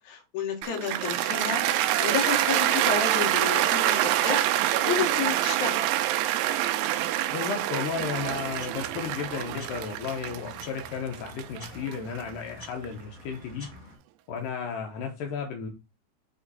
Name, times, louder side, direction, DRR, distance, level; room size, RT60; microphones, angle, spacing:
voice 1, 0.1-4.5 4.8-5.8, left 6 dB, 60° left, 3 dB, 2.2 m, -31 dB
Cheering / Applause, 0.6-12.9, right 13 dB, 85° right, 2.7 m, -26 dB
voice 2, 7.3-13.7 14.3-15.7, left 6 dB, 80° left, 2 dB, 2.0 m, -33 dB
sound 1, 7.8-14.0, left 2 dB, 25° left, 1.0 m, -48 dB
7.9 x 3.0 x 4.0 m, 0.28 s
omnidirectional pair, 4.7 m